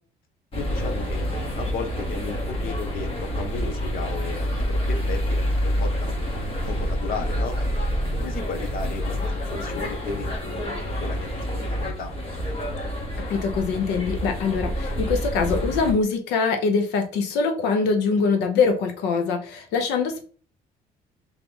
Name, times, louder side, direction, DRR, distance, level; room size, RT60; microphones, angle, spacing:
voice 1, 0.5-1.3 1.6-6.3 6.7-7.6 8.2-12.1, left 5 dB, 60° left, 6 dB, 1.0 m, -35 dB
sound 1, 0.5-15.9, equal, 35° left, 1.3 m, -27 dB
voice 2, 13.3-20.3, left 5 dB, 90° left, 5 dB, 0.9 m, -23 dB
3.8 x 3.1 x 3.6 m, 0.41 s
cardioid pair, 110°, 17 cm